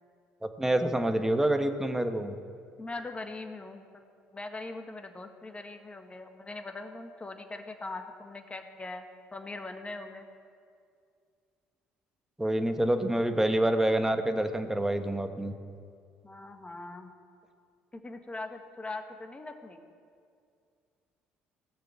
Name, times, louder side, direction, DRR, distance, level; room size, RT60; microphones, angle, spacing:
voice 1, 0.4-2.4 12.4-15.5, right 1 dB, 10° right, 7 dB, 1.3 m, -27 dB
voice 2, 2.8-4.1 4.3-9.0 9.3-10.3 16.2-17.1 17.9-19.8, left 2 dB, 20° left, 6 dB, 1.6 m, -41 dB
17.0 x 6.8 x 7.7 m, 2.3 s
hypercardioid pair, 55°, 5 cm